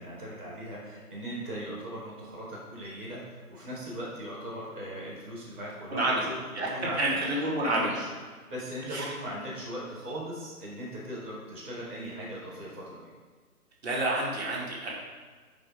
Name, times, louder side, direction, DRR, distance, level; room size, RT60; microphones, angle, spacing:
voice 1, 0.0-6.0 6.2-6.3 6.6-7.2 7.6-8.1 8.5-13.0, equal, 10° right, -16 dB, 1.0 m, -39 dB
voice 2, 5.9-6.7 7.0-8.0 8.9-9.0 13.8-14.9, right 1 dB, 45° right, -4 dB, 2.4 m, -29 dB
7.6 x 5.4 x 5.0 m, 1.5 s
figure-of-eight pair, 165°, 45 cm